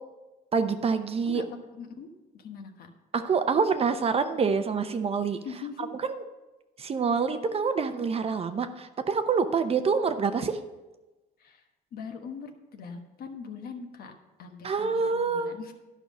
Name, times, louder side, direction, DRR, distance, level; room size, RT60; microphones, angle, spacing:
voice 1, 0.5-1.4 3.1-5.4 6.1-6.2 6.8-10.6 14.6-15.5, right 5 dB, 35° right, 9 dB, 0.8 m, -26 dB
voice 2, 1.7-2.9 5.4-5.9 11.4-14.1 14.4-15.7, left 5 dB, 60° left, 5 dB, 1.3 m, -42 dB
11.5 x 5.7 x 6.2 m, 1.1 s
cardioid pair, 110°, 17 cm